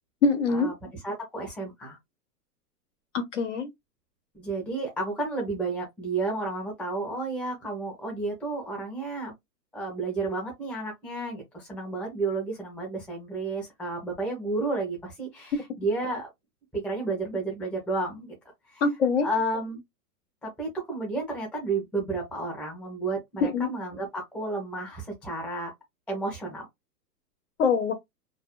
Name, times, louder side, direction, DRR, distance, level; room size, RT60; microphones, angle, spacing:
voice 1, 0.2-0.7 3.1-3.7 18.8-19.3 23.4-23.7 27.6-27.9, left 4 dB, 50° left, 0.5 m, -24 dB
voice 2, 1.0-2.0 4.3-9.3 9.7-16.3 16.7-18.3 18.7-18.8 19.2-19.8 20.4-25.7 26.1-26.7, right 3 dB, ahead, 0.5 m, -31 dB
2.5 x 2.2 x 2.3 m
hypercardioid pair, 170°, 49 cm